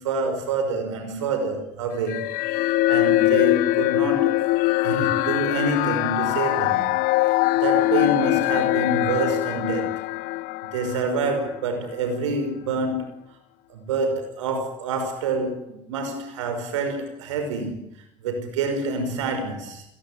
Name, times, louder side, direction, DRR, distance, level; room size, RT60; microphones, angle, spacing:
voice 1, 0.0-2.3 2.9-4.5 4.8-6.9 7.2-10.0 10.6-13.4 13.7-19.8, right 3 dB, 80° right, 5.8 m, -27 dB
sound 1, 2.1-11.6, left 18 dB, 65° left, 1.2 m, -22 dB
29.0 x 21.5 x 8.9 m
hypercardioid pair, 60°, 16 cm